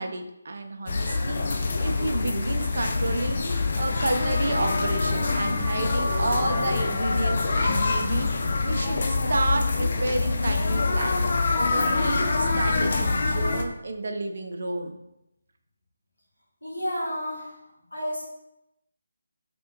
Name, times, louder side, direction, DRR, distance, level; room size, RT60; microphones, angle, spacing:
voice 1, 0.0-1.4 1.8-3.4 3.7-8.3 8.6-11.2 11.7-15.0, right 2 dB, 55° right, 5 dB, 0.4 m, -30 dB
sound 1, 0.9-13.6, left 3 dB, 45° left, 0.4 m, -25 dB
voice 2, 16.6-17.6 17.9-18.2, equal, 75° left, -5 dB, 1.5 m, -31 dB
3.4 x 3.3 x 2.9 m, 0.86 s
figure-of-eight pair, 150°, 0 cm